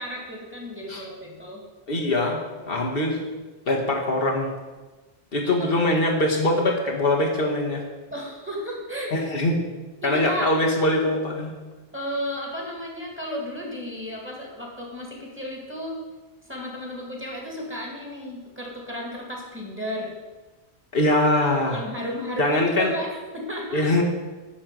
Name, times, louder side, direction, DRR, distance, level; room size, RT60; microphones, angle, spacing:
voice 1, 0.0-1.6 5.4-5.7 8.1-9.1 10.0-10.5 11.9-16.0 16.4-20.1 21.7-23.8, equal, 10° right, -2 dB, 2.1 m, -33 dB
voice 2, 1.9-2.4 2.7-3.2 3.7-4.5 5.3-7.8 9.1-9.6 10.0-11.5 20.9-21.8 22.4-22.9 23.7-24.0, left 1 dB, 65° left, 0 dB, 1.5 m, -22 dB
10.0 x 4.3 x 7.5 m, 1.2 s
omnidirectional pair, 1.0 m